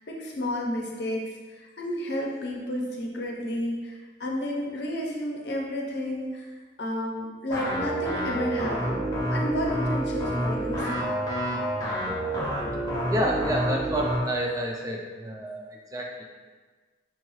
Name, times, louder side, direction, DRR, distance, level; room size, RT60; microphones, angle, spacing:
voice 1, 0.1-1.2 1.5-6.5 6.8-11.1, left 1 dB, 65° left, -1 dB, 0.6 m, -31 dB
sound 1, 7.5-14.2, right 1 dB, 20° left, 0.6 m, -28 dB
voice 2, 13.1-16.2, right 1 dB, 20° right, 0 dB, 0.4 m, -29 dB
4.5 x 2.3 x 3.1 m, 1.4 s
head